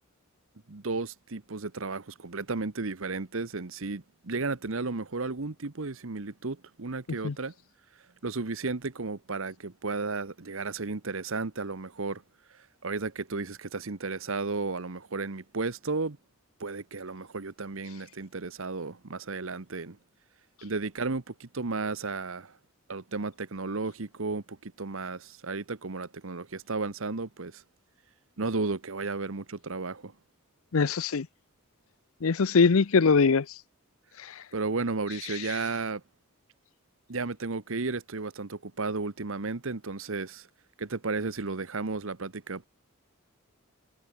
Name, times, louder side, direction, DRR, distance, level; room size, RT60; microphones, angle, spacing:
voice 1, 0.7-7.5 8.2-12.2 12.8-16.2 16.6-20.0 20.6-22.5 22.9-27.6 28.4-30.1 34.5-36.0 37.1-40.5 40.8-42.7, right 3 dB, 65° right, 1.1 m, -33 dB
voice 2, 30.7-31.3 32.2-33.5 34.2-34.3, left 5 dB, 70° left, 0.6 m, -22 dB
head